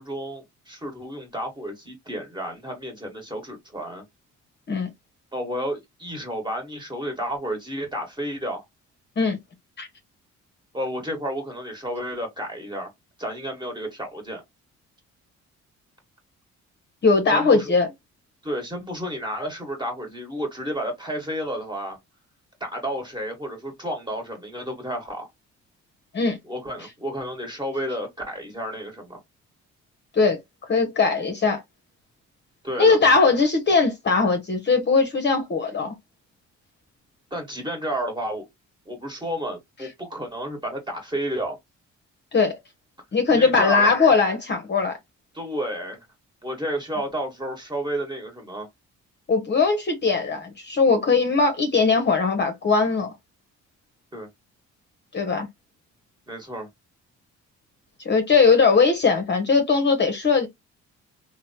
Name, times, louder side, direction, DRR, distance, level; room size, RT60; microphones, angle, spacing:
voice 1, 0.0-4.0 5.3-8.6 10.7-12.9 13.2-14.4 17.3-17.7 18.4-22.0 22.6-25.3 26.5-29.2 32.6-33.0 37.3-38.5 38.9-41.6 43.3-43.9 45.3-46.1 46.4-48.7 54.1-54.3 56.3-56.7, equal, 15° right, 1.4 m, -31 dB
voice 2, 17.0-17.9 26.1-26.4 30.1-30.4 30.7-31.6 32.8-35.9 42.3-42.6 43.1-45.0 49.3-53.1 55.1-55.5 58.0-60.5, left 4 dB, 35° left, 0.7 m, -20 dB
2.9 x 2.1 x 2.7 m
cardioid pair, 90°, 30 cm